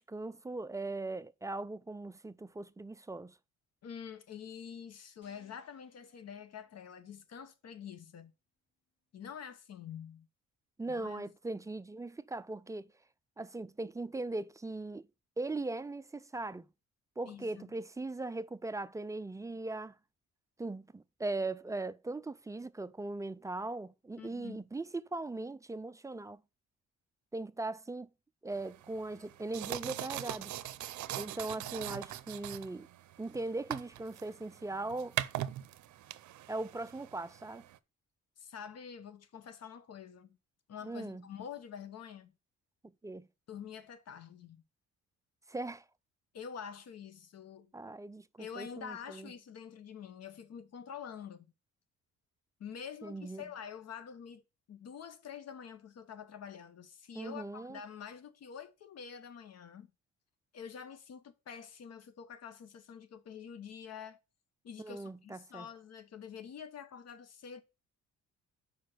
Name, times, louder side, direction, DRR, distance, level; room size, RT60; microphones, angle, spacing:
voice 1, 0.0-3.4 10.8-12.9 13.4-15.1 15.4-16.7 17.2-20.0 20.6-26.4 27.3-28.1 28.4-30.6 31.1-32.9 33.2-35.2 36.5-37.6 40.8-41.3 42.8-43.3 45.5-45.8 47.7-49.3 53.0-53.4 57.2-57.8 64.8-65.7, right 2 dB, 10° right, 0.3 m, -39 dB
voice 2, 3.8-8.3 9.1-10.3 10.9-11.2 17.2-17.7 24.2-24.6 38.4-40.4 40.7-42.3 43.5-44.6 46.3-47.7 48.4-51.5 52.6-54.4 54.7-59.9 60.5-64.2 64.6-67.6, left 7 dB, 55° left, 0.9 m, -47 dB
sound 1, 5.2-7.5, left 2 dB, 75° left, 3.5 m, -69 dB
sound 2, 28.5-37.8, right 13 dB, 70° right, 0.6 m, -42 dB
5.0 x 4.7 x 6.2 m
cardioid pair, 90°, 30 cm